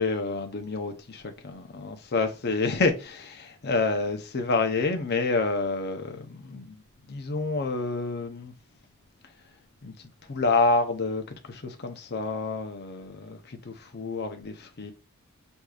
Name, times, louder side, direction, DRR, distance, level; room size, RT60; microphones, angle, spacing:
voice 1, 0.0-6.8 7.1-8.5 9.8-14.9, left 3 dB, 45° left, 0.6 m, -28 dB
4.8 x 2.7 x 2.3 m
head